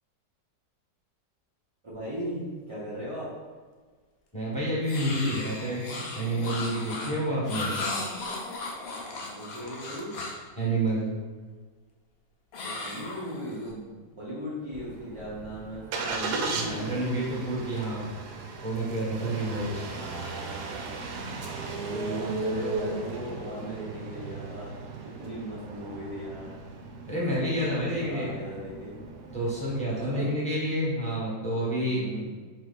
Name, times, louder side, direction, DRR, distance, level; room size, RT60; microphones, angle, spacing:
voice 1, 1.8-3.3 9.3-10.1 12.6-17.0 19.3-20.9 21.6-26.5 27.9-29.0 30.1-30.3 31.8-32.3, equal, 35° right, -10 dB, 0.5 m, -38 dB
voice 2, 4.3-5.8 6.1-7.7 10.6-11.1 16.5-18.0 18.6-19.8 27.1-28.3 29.3-32.0, right 1 dB, 5° left, -7 dB, 1.0 m, -29 dB
sound 1, 4.8-10.5 12.5-13.7, left 2 dB, 70° left, 0.6 m, -36 dB
Engine starting, 14.7-30.0, right 3 dB, 70° right, 1.1 m, -37 dB
3.9 x 3.1 x 4.0 m, 1.5 s
omnidirectional pair, 1.9 m